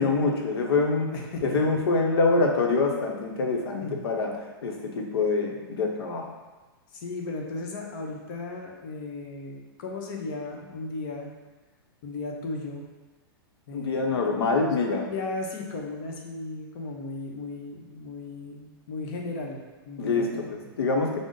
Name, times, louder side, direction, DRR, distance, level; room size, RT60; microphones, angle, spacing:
voice 1, 0.0-1.1 1.4-4.3 4.6-6.3 13.7-15.1 20.0-21.2, left 3 dB, 80° left, 1 dB, 0.8 m, -25 dB
voice 2, 1.1-1.8 3.8-4.0 6.9-11.3 12.0-12.9 13.7-14.7 15.1-20.7, left 3 dB, 55° left, 0 dB, 0.8 m, -36 dB
5.1 x 2.0 x 3.7 m, 1.3 s
hypercardioid pair, 125°, 13 cm